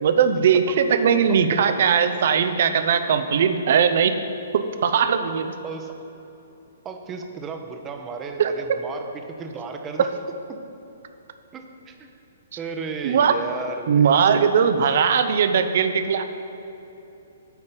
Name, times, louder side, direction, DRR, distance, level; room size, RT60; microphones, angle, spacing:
voice 1, 0.0-4.1 4.5-5.5 8.4-8.5 13.0-13.3 13.9-16.2, right 7 dB, 50° right, 9 dB, 0.6 m, -19 dB
voice 2, 3.3-3.6 5.6-6.0 6.8-10.1 10.5-10.6 11.5-12.1 12.6-14.1 14.8-15.0, right 4 dB, 20° right, 5 dB, 0.8 m, -34 dB
9.1 x 5.4 x 6.8 m, 3.0 s
figure-of-eight pair, 120°, 0 cm